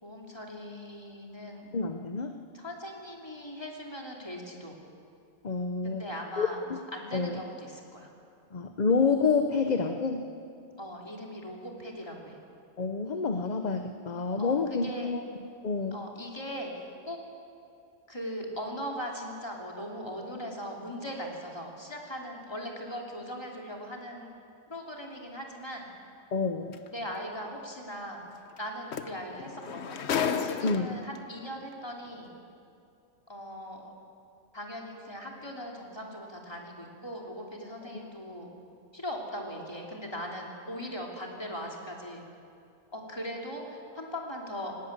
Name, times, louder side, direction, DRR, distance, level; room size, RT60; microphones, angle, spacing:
voice 1, 0.0-1.7 2.5-4.8 5.8-6.6 6.9-8.1 10.8-12.4 14.4-15.1 15.9-16.7 17.1-17.2 18.1-24.3 24.7-25.9 26.9-28.2 28.6-32.3 33.3-33.8 34.5-38.5 38.9-42.2 42.9-44.7, equal, 20° left, -1 dB, 3.0 m, -39 dB
voice 2, 1.7-2.3 5.4-6.0 6.4-6.8 7.1-7.4 8.5-10.2 12.8-15.2 15.6-16.0 26.3-26.8 30.6-31.0, left 4 dB, 40° left, 6 dB, 0.9 m, -28 dB
sound 1, 26.7-26.9 28.6-28.7 28.9-31.2 32.1-32.2, left 7 dB, 70° left, 1.1 m, -32 dB
19.0 x 17.5 x 8.7 m, 2.6 s
omnidirectional pair, 1.2 m